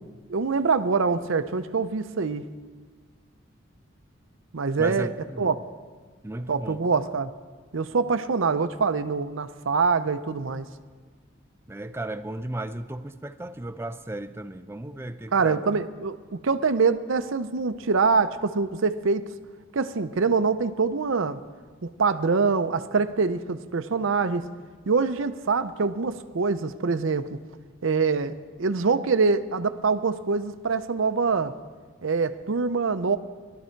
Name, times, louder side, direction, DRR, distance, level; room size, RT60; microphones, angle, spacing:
voice 1, 0.3-2.5 4.5-5.1 5.4-5.6 6.5-7.3 7.7-10.7 15.3-19.3 19.7-21.4 21.8-24.5 24.9-27.4 27.8-31.6 32.0-33.2, right 4 dB, 70° right, 0.6 m, -24 dB
voice 2, 4.8-5.6 6.2-6.9 11.7-15.7, right 1 dB, 10° right, 0.5 m, -35 dB
18.5 x 12.5 x 4.5 m
head